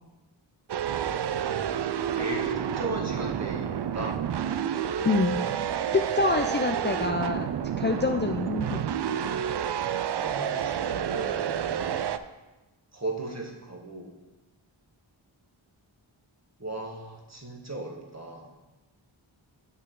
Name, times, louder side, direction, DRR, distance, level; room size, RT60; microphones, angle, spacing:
Monster Distortion, 0.7-12.2, right 9 dB, 60° right, 0.5 m, -29 dB
voice 1, 2.1-4.2 10.2-12.0 12.9-14.1 16.6-18.5, right 2 dB, 35° right, 0 dB, 1.7 m, -36 dB
voice 2, 5.0-5.4 5.9-7.5 7.8-8.9, left 3 dB, 25° left, 4 dB, 0.5 m, -26 dB
9.0 x 6.5 x 3.8 m, 1.1 s
wide cardioid pair, 45°, 48 cm